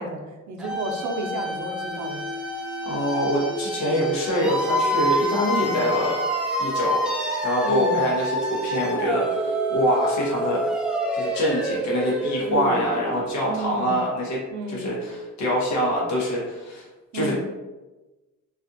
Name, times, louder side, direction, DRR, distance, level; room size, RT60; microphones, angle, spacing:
voice 1, 0.0-2.2 5.4-5.8 7.6-8.0 12.4-12.9 13.5-14.0 14.5-14.9 17.1-17.4, right 2 dB, 75° right, 2 dB, 0.6 m, -32 dB
sound 1, 0.6-13.4, equal, 5° right, 0.4 m, -27 dB
voice 2, 2.8-6.2 6.6-10.6 11.1-16.9 17.1-17.4, equal, 65° left, -4 dB, 0.9 m, -25 dB
2.4 x 2.4 x 2.6 m, 1.1 s
cardioid pair, 90°, 30 cm